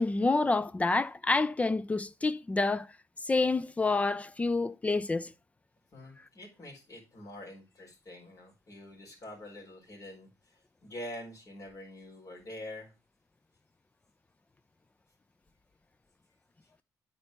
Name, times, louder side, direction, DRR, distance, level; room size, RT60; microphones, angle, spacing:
voice 1, 0.0-2.9 3.3-5.3, left 3 dB, 20° left, 0.4 m, -28 dB
voice 2, 5.9-12.9, left 1 dB, 50° left, 4.2 m, -46 dB
8.9 x 4.4 x 5.2 m
cardioid pair, 90°, 7 cm